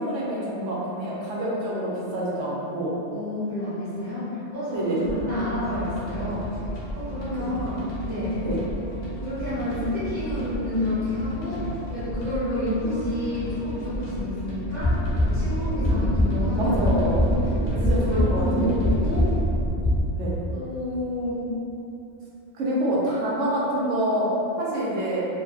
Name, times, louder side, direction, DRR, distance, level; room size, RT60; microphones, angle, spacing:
voice 1, 0.0-2.9 4.7-5.1 8.4-8.6 16.6-17.2 17.8-18.8 20.2-20.4 22.5-24.3 24.6-25.3, right 1 dB, 80° right, -5 dB, 0.9 m, -27 dB
voice 2, 3.1-6.5 6.9-8.4 9.2-11.6 11.9-14.9 15.3-16.8 17.2-17.3 17.7-19.3 20.5-21.5, left 1 dB, 50° right, -18 dB, 1.4 m, -29 dB
sound 1, 4.9-19.5, equal, 55° left, 0.7 m, -34 dB
sound 2, 14.7-20.0, left 1 dB, ahead, 0.7 m, -23 dB
2.6 x 2.4 x 2.3 m, 2.8 s
omnidirectional pair, 1.3 m